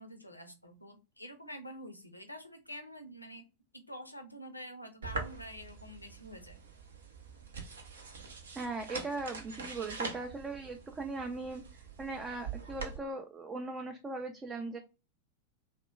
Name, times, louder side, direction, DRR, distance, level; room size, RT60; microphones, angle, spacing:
voice 1, 0.0-3.5 3.7-6.6, equal, 85° left, 6 dB, 0.5 m, -47 dB
sound 1, 5.0-13.0, right 4 dB, 65° right, 0.6 m, -43 dB
voice 2, 8.5-14.8, right 3 dB, 20° right, 4 dB, 0.3 m, -39 dB
2.8 x 2.1 x 2.3 m, 0.28 s
figure-of-eight pair, 90°, 0 cm